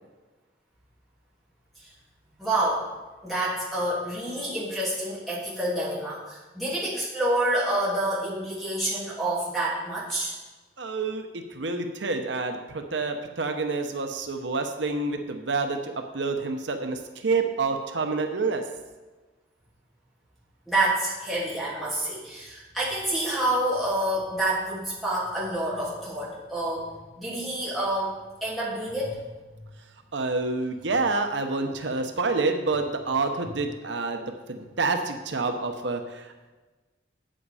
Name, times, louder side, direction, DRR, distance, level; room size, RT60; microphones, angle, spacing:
voice 1, 2.4-2.8 3.2-10.3 20.7-26.9 27.2-28.1 28.4-29.2, right 1 dB, ahead, -7 dB, 2.9 m, -28 dB
voice 2, 10.8-18.6 30.1-34.2 34.5-36.5, right 3 dB, 80° right, 5 dB, 0.8 m, -28 dB
8.6 x 7.8 x 4.9 m, 1.2 s
head